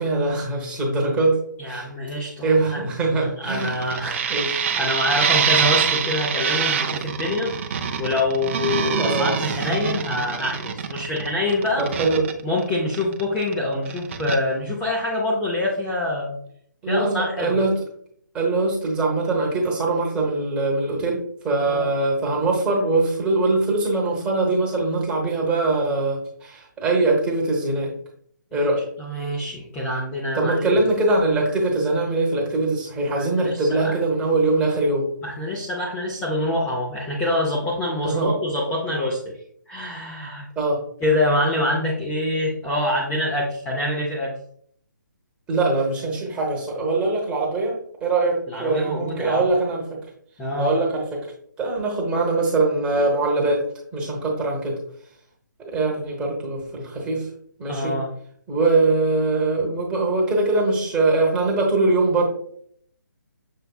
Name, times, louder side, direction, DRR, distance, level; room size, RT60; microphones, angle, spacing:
voice 1, 0.0-1.4 1.6-1.9 2.4-4.0 4.3-4.8 9.0-9.4 11.8-12.2 16.8-17.8 18.3-27.9 28.5-28.8 30.3-35.1 38.0-38.3 40.6-40.8 45.5-50.0 50.6-51.3 51.6-53.6 53.9-54.8 55.6-57.3 57.6-57.9 58.5-62.2, right 2 dB, 10° right, -2 dB, 1.0 m, -22 dB
voice 2, 1.6-2.9 3.4-7.5 8.0-11.9 12.4-16.4 16.9-17.6 21.7-21.9 28.5-28.7 29.0-30.8 33.2-34.0 35.2-39.4 39.7-40.5 41.0-44.3 48.5-49.4 50.4-50.7 57.7-58.1, left 1 dB, 10° left, -4 dB, 0.6 m, -25 dB
sound 1, 3.5-13.5 13.8-14.4, right 7 dB, 40° right, 0.5 m, -25 dB
6.8 x 3.3 x 2.3 m, 0.63 s
figure-of-eight pair, 150°, 10 cm